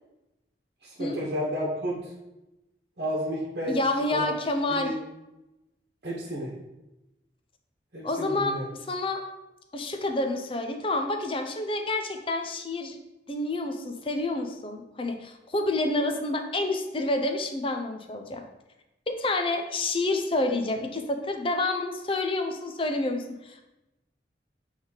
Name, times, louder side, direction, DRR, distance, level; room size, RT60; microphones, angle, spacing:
voice 1, 0.8-2.1 3.0-3.8 4.1-4.3 4.7-5.0 6.0-6.5 7.9-8.7, equal, 60° right, -5 dB, 1.1 m, -31 dB
voice 2, 3.7-4.9 8.0-8.6 8.9-9.2 9.7-13.0 13.3-18.4 19.2-23.6, left 2 dB, 30° left, 5 dB, 0.6 m, -28 dB
7.7 x 3.5 x 3.9 m, 0.97 s
head